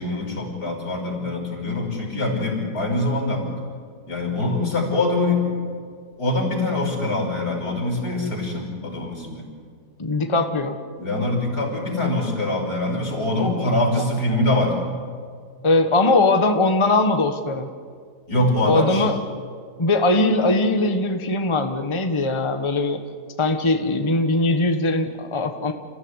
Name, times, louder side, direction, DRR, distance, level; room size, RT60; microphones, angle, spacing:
voice 1, 0.0-3.4 4.1-5.6 6.2-9.4 11.0-14.7 18.3-19.1, left 2 dB, 75° left, -1 dB, 6.2 m, -23 dB
voice 2, 10.0-10.8 13.9-14.0 15.6-17.7 18.6-19.2 19.8-23.0 23.4-25.7, left 2 dB, 20° left, 6 dB, 1.2 m, -20 dB
29.0 x 15.5 x 9.7 m, 2.1 s
omnidirectional pair, 1.7 m